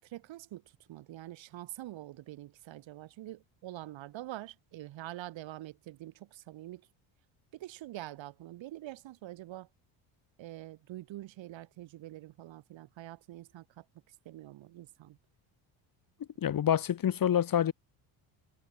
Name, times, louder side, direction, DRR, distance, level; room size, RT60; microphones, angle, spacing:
voice 1, 0.0-6.9 7.5-9.7 10.4-15.2, right 15 dB, 65° right, 5.2 m, -45 dB
voice 2, 16.4-17.7, left 9 dB, 45° left, 2.3 m, -27 dB
supercardioid pair, 85°, 48 cm